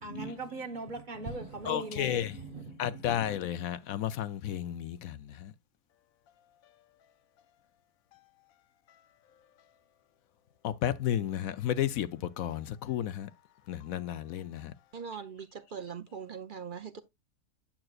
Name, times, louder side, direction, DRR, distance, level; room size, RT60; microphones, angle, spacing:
voice 1, 0.0-3.2, right 3 dB, 35° right, 1.2 m, -40 dB
voice 2, 1.6-2.4 2.8-5.5 10.6-13.3 13.7-14.7, left 11 dB, 75° left, 1.1 m, -32 dB
voice 3, 14.9-17.0, right 6 dB, 55° right, 0.6 m, -41 dB
8.8 x 7.6 x 2.4 m
omnidirectional pair, 1.5 m